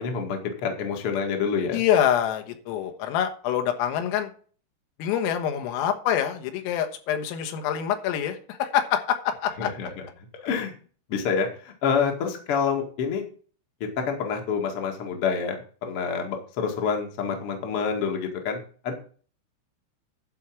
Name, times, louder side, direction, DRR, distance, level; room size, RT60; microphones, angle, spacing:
voice 1, 0.0-1.8 9.6-10.0 10.4-10.7 11.1-13.2 14.0-18.9, left 6 dB, 60° left, 3 dB, 1.4 m, -27 dB
voice 2, 1.7-4.3 5.0-9.7, left 9 dB, 85° left, 6 dB, 3.9 m, -25 dB
11.5 x 4.6 x 7.3 m, 0.42 s
omnidirectional pair, 6.0 m